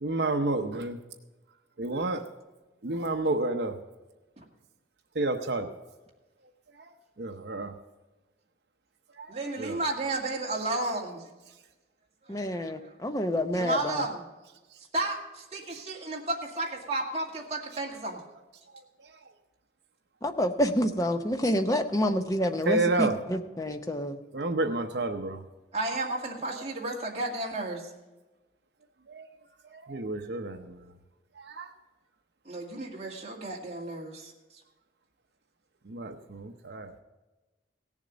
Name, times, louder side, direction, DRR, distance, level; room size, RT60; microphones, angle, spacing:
voice 1, 0.0-1.0 1.8-2.2 2.8-3.7 5.2-5.7 7.2-7.7 9.2-9.3 9.6-9.8 15.7-15.8 22.7-23.1 24.3-25.4 29.1-29.2 29.7-30.8 31.4-31.7 35.9-36.9, right 2 dB, 65° right, 6 dB, 0.7 m, -30 dB
voice 2, 9.3-11.2 12.3-12.9 13.5-14.2 14.9-18.2 25.7-27.9 32.5-34.3, right 2 dB, 35° right, -2 dB, 2.1 m, -33 dB
voice 3, 12.3-14.0 20.2-24.2, equal, 20° left, 6 dB, 0.7 m, -28 dB
17.0 x 7.2 x 5.1 m, 1.1 s
head